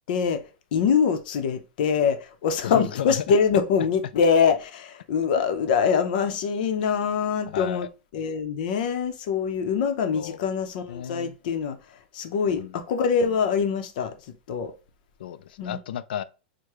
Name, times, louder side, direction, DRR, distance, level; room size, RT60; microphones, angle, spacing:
voice 1, 0.1-0.4 0.7-11.8 12.1-14.1 14.5-14.7 15.6-15.8, left 6 dB, 65° left, 0.7 m, -24 dB
voice 2, 2.6-3.2 5.4-5.5 7.5-7.9 10.1-10.4 10.9-11.4 12.5-12.7 15.2-16.2, left 10 dB, 85° left, 0.4 m, -33 dB
6.4 x 2.2 x 3.0 m
supercardioid pair, 145°, 5 cm